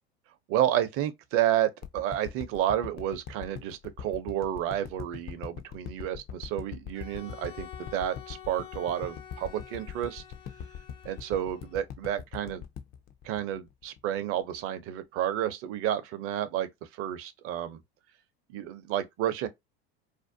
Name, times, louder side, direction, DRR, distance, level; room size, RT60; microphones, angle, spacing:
voice 1, 0.5-10.2 11.1-12.6 13.2-17.8 18.5-19.5, right 11 dB, 45° right, 0.6 m, -31 dB
sound 1, 1.8-14.1 14.6-14.7, left 8 dB, 30° left, 0.4 m, -42 dB
Bowed string instrument, 6.9-11.9, left 9 dB, 65° left, 0.8 m, -48 dB
2.5 x 2.1 x 2.5 m
hypercardioid pair, 90°, 31 cm